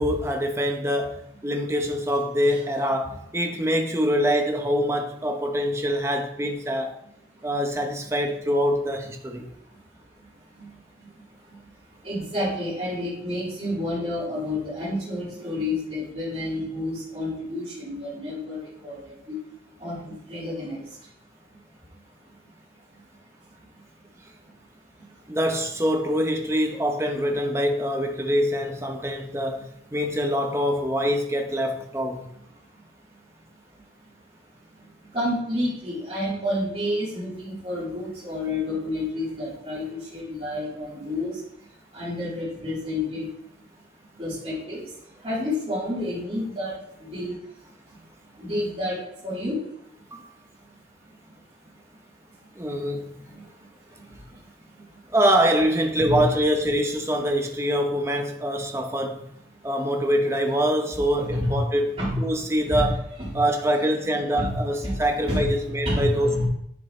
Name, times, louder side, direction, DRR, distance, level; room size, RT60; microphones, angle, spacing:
voice 1, 0.0-6.9 7.4-9.4 25.3-32.3 50.1-50.3 52.5-53.2 55.1-59.3 59.6-63.0 63.3-66.5, equal, 15° right, 0.9 m, -24 dB
voice 2, 12.0-18.6 18.8-19.0 19.3-19.4 19.8-20.8 35.1-39.8 40.1-41.3 41.9-43.3 44.2-44.8 45.2-46.7 47.0-47.3 48.4-49.0 49.2-49.6 56.0-56.3 60.9-61.6 62.0-62.2 62.6-62.9 63.2-63.3 64.4-64.5 64.8-64.9 65.3-66.5, left 1 dB, 35° right, 3.8 m, -29 dB
10.5 x 7.2 x 3.3 m
head